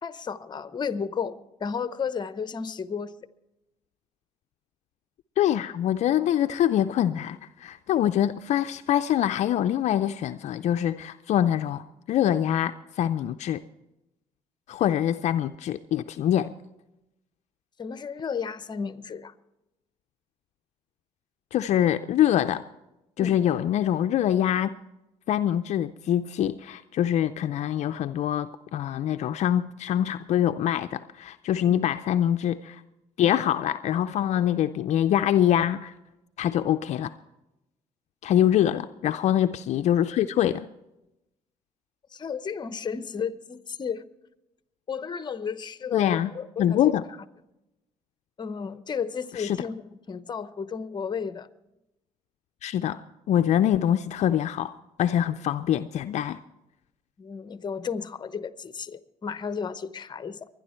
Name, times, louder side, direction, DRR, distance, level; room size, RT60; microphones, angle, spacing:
voice 1, 0.0-3.2 14.8-14.9 17.8-19.3 23.2-23.4 38.4-38.6 42.1-44.0 44.9-46.9 48.4-51.5 57.2-60.5, left 6 dB, 35° left, 13 dB, 0.9 m, -33 dB
voice 2, 5.4-13.6 14.7-16.5 21.5-22.6 23.2-24.8 25.3-32.8 33.2-35.9 36.4-37.1 38.2-40.7 45.9-46.3 46.6-47.0 49.3-49.6 52.6-53.0 53.3-56.4, left 11 dB, 65° left, 10 dB, 0.4 m, -24 dB
23.0 x 10.5 x 4.4 m, 0.93 s
supercardioid pair, 75°, 12 cm